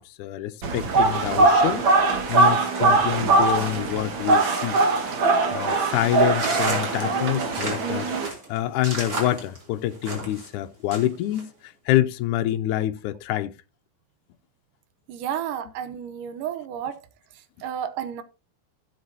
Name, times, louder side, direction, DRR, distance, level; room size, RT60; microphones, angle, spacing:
voice 1, 0.0-1.8 2.3-4.8 5.5-8.1 8.5-13.6, left 13 dB, 80° left, 2.0 m, -26 dB
sound 1, 0.6-8.3, right 3 dB, 45° right, 2.0 m, -21 dB
sound 2, 6.3-10.5 10.9-11.4, right 2 dB, 30° right, 3.2 m, -32 dB
voice 2, 15.1-17.0 17.6-18.2, right 9 dB, 80° right, 2.4 m, -31 dB
16.0 x 7.5 x 2.7 m
omnidirectional pair, 3.7 m